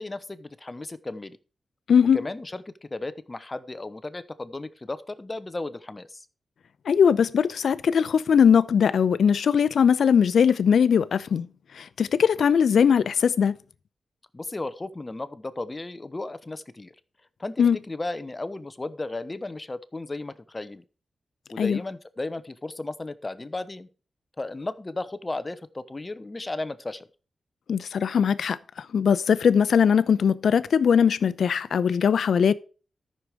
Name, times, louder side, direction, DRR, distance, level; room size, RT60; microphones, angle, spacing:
voice 1, 0.0-1.4 2.1-6.3 14.3-16.9 17.4-20.8 21.5-23.9 24.4-27.1, left 2 dB, 20° left, 0.9 m, -35 dB
voice 2, 6.9-11.5 11.8-13.6 17.6-17.8 21.6-21.8 27.7-28.6 28.9-32.5, left 7 dB, 80° left, 0.7 m, -20 dB
13.5 x 6.6 x 4.6 m
wide cardioid pair, 140°, 0 cm